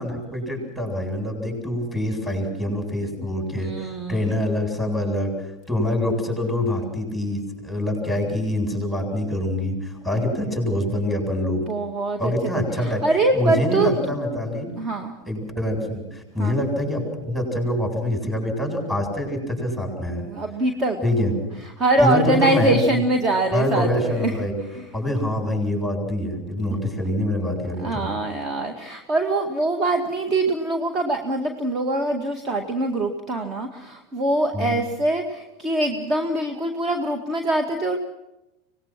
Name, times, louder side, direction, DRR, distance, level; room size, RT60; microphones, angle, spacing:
voice 1, 0.0-11.6 12.2-13.0 13.3-14.7 15.3-20.2 21.0-21.4 22.0-23.0 23.5-24.6 24.9-28.1 34.5-34.7, left 1 dB, 5° right, 1 dB, 7.9 m, -25 dB
voice 2, 3.6-4.3 11.6-12.2 12.8-13.9 14.8-15.1 16.4-16.6 20.2-21.0 21.8-24.3 24.7-24.8 27.8-38.0, right 2 dB, 30° right, 5 dB, 2.0 m, -23 dB
25.5 x 19.5 x 6.1 m, 0.93 s
figure-of-eight pair, 85°, 0 cm